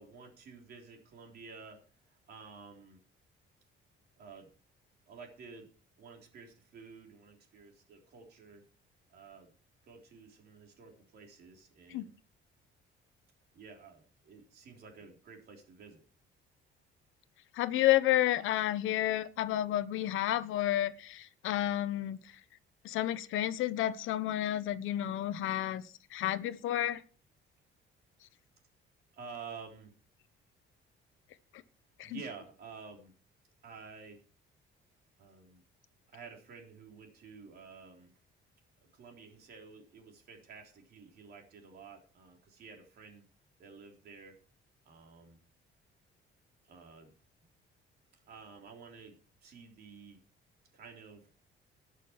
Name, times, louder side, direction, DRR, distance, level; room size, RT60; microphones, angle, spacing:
voice 1, 0.0-1.8 2.3-3.0 4.2-4.5 5.1-5.7 6.0-8.6 9.1-9.5 9.8-12.1 13.5-16.0 29.1-29.9 32.0-33.1 33.6-34.2 35.2-35.6 36.1-38.1 38.9-43.3 43.6-44.4 44.9-45.4 46.6-47.1 48.2-50.2 50.7-51.3, right 5 dB, 50° right, 2 dB, 3.6 m, -51 dB
voice 2, 17.5-22.2 22.8-25.8 26.1-27.0 32.0-32.2, left 13 dB, 75° left, 14 dB, 1.0 m, -30 dB
19.0 x 6.8 x 4.6 m, 0.39 s
cardioid pair, 180°, 21 cm